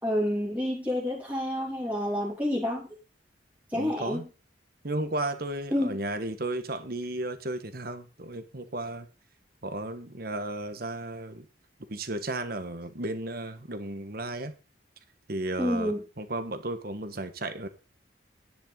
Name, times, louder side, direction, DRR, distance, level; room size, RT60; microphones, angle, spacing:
voice 1, 0.0-2.9 3.7-4.2 5.7-6.0 15.6-16.0, left 1 dB, 10° right, 2.8 m, -28 dB
voice 2, 3.7-4.2 4.8-9.1 9.6-11.5 11.9-14.5 15.3-17.7, right 2 dB, 55° right, 1.4 m, -34 dB
10.5 x 10.0 x 3.9 m
head